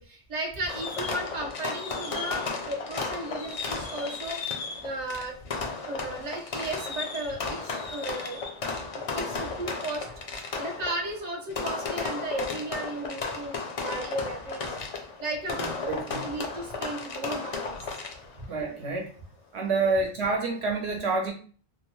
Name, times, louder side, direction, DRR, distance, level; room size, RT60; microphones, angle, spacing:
voice 1, 0.0-5.3 5.9-8.4 9.1-10.1 10.6-14.8 15.2-17.8 18.4-18.5 19.8-20.0, right 1 dB, 50° right, 1 dB, 0.7 m, -35 dB
Fireworks, 0.7-18.4, left 4 dB, 50° left, 0.4 m, -34 dB
voice 2, 15.6-16.3 18.5-19.1 19.5-21.3, right 3 dB, 80° right, 0 dB, 1.1 m, -28 dB
2.7 x 2.0 x 3.0 m, 0.42 s
omnidirectional pair, 1.1 m